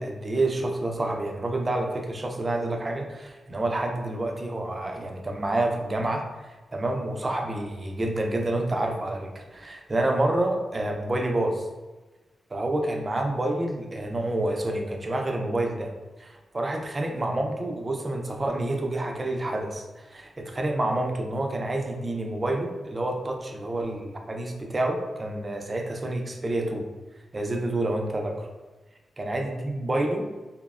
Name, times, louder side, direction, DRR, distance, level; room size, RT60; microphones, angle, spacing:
voice 1, 0.0-11.7 12.5-15.9 16.2-26.9 27.3-28.5 29.2-30.3, right 1 dB, 30° right, 2 dB, 0.4 m, -28 dB
2.7 x 2.0 x 2.3 m, 1.2 s
cardioid pair, 85°, 0 cm